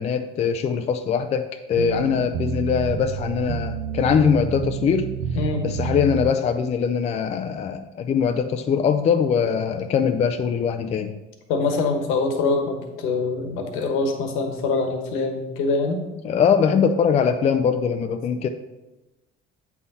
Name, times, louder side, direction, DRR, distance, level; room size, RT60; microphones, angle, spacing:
voice 1, 0.0-5.1 5.6-11.1 16.2-18.5, left 7 dB, 30° left, 7 dB, 0.4 m, -22 dB
sound 1, 1.8-6.3, right 7 dB, 85° right, 0.6 m, -29 dB
voice 2, 11.5-16.0, left 3 dB, 75° left, 4 dB, 1.2 m, -24 dB
8.2 x 3.7 x 4.1 m, 1.0 s
cardioid pair, 115°, 21 cm